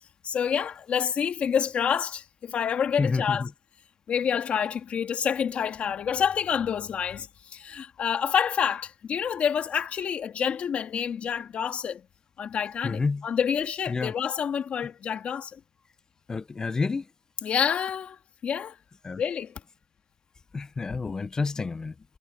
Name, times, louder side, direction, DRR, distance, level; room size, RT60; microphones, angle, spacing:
voice 1, 0.2-3.5 4.1-12.0 12.4-15.6 17.4-18.2 18.4-18.8 19.2-19.5, left 7 dB, 65° left, 2.0 m, -28 dB
voice 2, 3.0-3.5 12.8-13.3 13.9-14.1 16.3-17.1 19.0-19.2 20.5-21.9, left 4 dB, 30° left, 0.5 m, -29 dB
wide cardioid pair, 145°, 2 cm